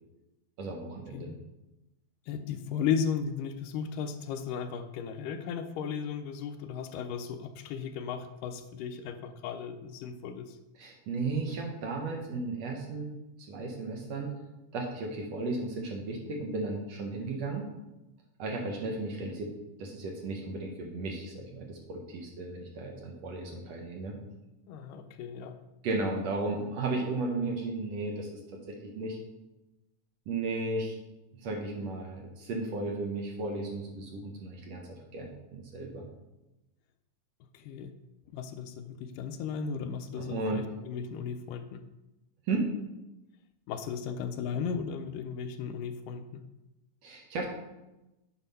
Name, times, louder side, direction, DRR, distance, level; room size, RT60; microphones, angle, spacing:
voice 1, 0.6-1.3 10.8-13.1 13.4-14.3 14.7-17.7 18.4-19.5 19.8-24.2 25.8-28.4 28.7-29.2 30.3-31.0 31.4-36.0 40.2-40.7 42.5-42.7 47.0-47.5, right 3 dB, 65° right, 0 dB, 1.9 m, -34 dB
voice 2, 2.3-10.6 24.7-25.6 37.5-37.9 38.3-41.8 43.7-46.4, left 7 dB, 85° left, 9 dB, 2.2 m, -35 dB
9.2 x 4.5 x 5.5 m, 0.98 s
omnidirectional pair, 3.8 m